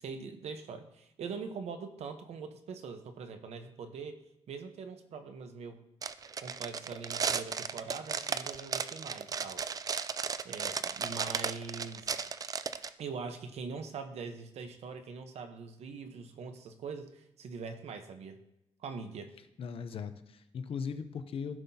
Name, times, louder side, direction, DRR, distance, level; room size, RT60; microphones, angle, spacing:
voice 1, 0.0-5.8 6.4-9.6 10.4-12.3 13.0-18.4 18.8-19.3, right 5 dB, 70° right, 8 dB, 1.0 m, -43 dB
sound 1, 6.0-12.9, right 6 dB, 35° right, 0.4 m, -35 dB
voice 2, 19.6-21.6, left 6 dB, 55° left, 10 dB, 0.7 m, -39 dB
15.0 x 5.7 x 2.8 m, 0.86 s
cardioid pair, 130°, 11 cm